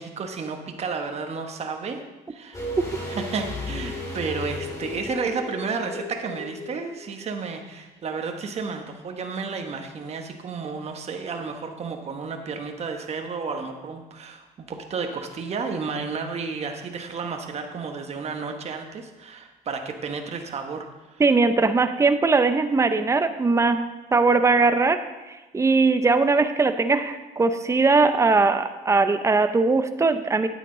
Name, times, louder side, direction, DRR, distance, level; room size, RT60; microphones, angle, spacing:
voice 1, 0.0-2.0 2.3-2.6 3.0-21.2, right 5 dB, 40° right, 4 dB, 1.1 m, -32 dB
sound 1, 2.5-7.4 7.6-7.7, left 2 dB, 20° left, 2.5 m, -34 dB
voice 2, 21.2-23.8 24.1-25.0 25.5-30.5, right 3 dB, 15° right, 9 dB, 0.6 m, -20 dB
9.3 x 9.0 x 3.8 m, 1.1 s
cardioid pair, 110°, 17 cm